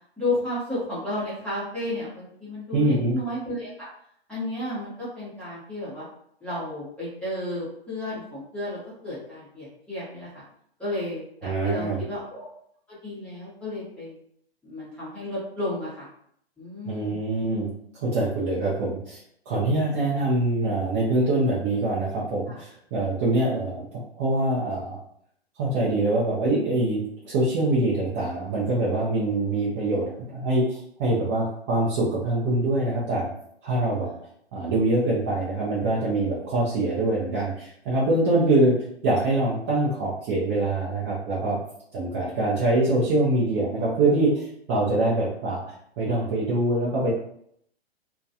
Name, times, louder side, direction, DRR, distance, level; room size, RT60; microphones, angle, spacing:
voice 1, 0.2-3.9 4.3-6.0 6.4-10.3 10.8-12.5 12.9-14.2 14.6-16.1 16.6-17.2 22.5-22.6 34.0-34.1, left 1 dB, 5° left, -11 dB, 0.8 m, -32 dB
voice 2, 2.7-3.1 11.4-12.0 16.8-17.7 18.0-19.2 19.5-25.0 25.6-33.3 33.6-34.1 34.5-38.8 39.0-41.6 41.9-47.1, right 2 dB, 25° right, -7 dB, 0.5 m, -24 dB
2.2 x 2.2 x 2.7 m, 0.68 s
figure-of-eight pair, 125°, 32 cm